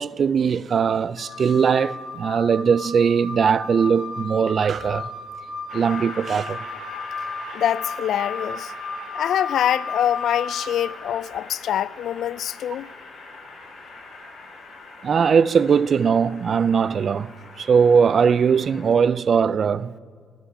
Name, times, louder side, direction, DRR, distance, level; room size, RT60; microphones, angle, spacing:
voice 1, 0.0-5.1 5.7-6.6 15.0-17.3 17.6-19.9, right 6 dB, 50° right, 0.4 m, -20 dB
Wind instrument woodwind instrument, 1.2-10.8, left 3 dB, 90° left, 1.9 m, -34 dB
Train, 5.7-19.1, left 3 dB, 45° left, 3.1 m, -42 dB
voice 2, 7.5-8.7 9.1-12.9, left 10 dB, 70° left, 0.4 m, -24 dB
17.5 x 8.2 x 9.9 m
cardioid pair, 90°, 0 cm